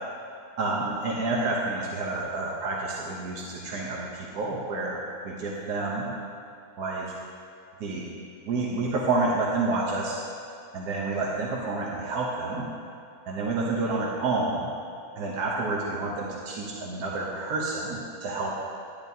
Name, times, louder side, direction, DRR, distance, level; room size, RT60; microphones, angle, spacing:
voice 1, 0.6-5.0 5.2-6.1 6.8-7.2 7.8-8.1 8.4-10.2 10.7-12.7 13.3-14.7 15.2-18.6, right 3 dB, 85° right, -3 dB, 1.4 m, -29 dB
10.5 x 10.0 x 2.7 m, 2.5 s
omnidirectional pair, 1.6 m